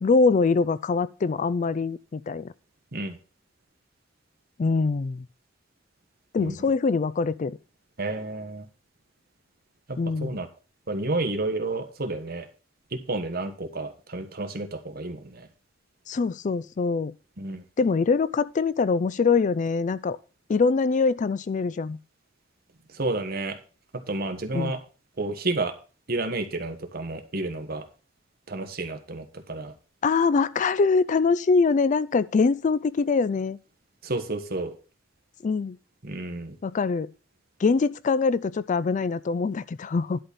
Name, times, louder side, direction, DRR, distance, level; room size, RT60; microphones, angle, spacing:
voice 1, 0.0-2.5 4.6-5.2 6.3-7.6 10.0-10.4 16.1-17.1 17.8-20.2 20.5-22.0 24.5-24.7 30.0-33.6 35.4-35.8 36.6-37.1 37.6-40.2, left 4 dB, 40° left, 0.4 m, -23 dB
voice 2, 8.0-8.7 9.9-10.5 10.9-12.5 12.9-15.5 17.4-17.6 22.9-23.6 24.1-24.8 25.2-25.7 26.1-27.8 28.5-29.7 34.0-34.7 36.0-36.5, right 2 dB, 50° right, 1.4 m, -30 dB
11.0 x 4.2 x 6.9 m
head